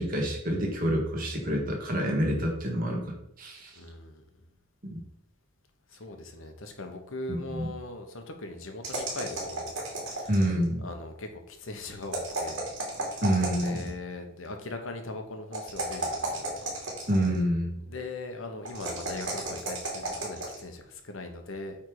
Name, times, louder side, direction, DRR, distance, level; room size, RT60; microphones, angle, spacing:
voice 1, 0.0-3.7 4.8-5.0 7.3-7.7 10.3-10.9 13.2-13.9 17.1-17.8, equal, 40° right, 0 dB, 1.7 m, -28 dB
voice 2, 3.7-4.2 5.9-9.7 10.0-10.3 10.8-12.6 13.0-13.2 13.6-16.6 17.8-21.8, left 2 dB, 75° left, 5 dB, 1.1 m, -40 dB
sound 1, 8.8-10.6 12.0-13.9 15.5-17.4 18.7-20.6, right 2 dB, 60° right, 2.8 m, -34 dB
8.5 x 3.7 x 4.8 m, 0.75 s
head